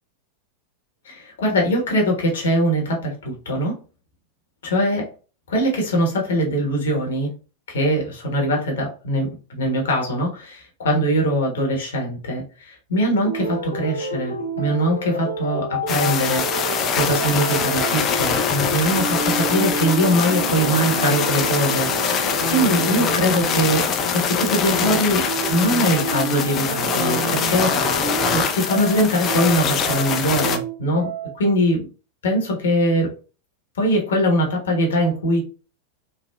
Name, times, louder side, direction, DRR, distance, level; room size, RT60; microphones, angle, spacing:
voice 1, 1.0-3.7 4.6-5.0 5.5-7.3 7.7-23.9 24.1-31.1 31.3-31.9 32.2-33.1 33.8-35.4, equal, 60° left, 0 dB, 0.9 m, -22 dB
sound 1, 13.2-31.5, right 2 dB, 90° left, 0.8 m, -29 dB
sound 2, 15.9-30.6, left 6 dB, 30° left, 0.4 m, -23 dB
3.3 x 2.0 x 2.2 m, 0.35 s
figure-of-eight pair, 90°, 0 cm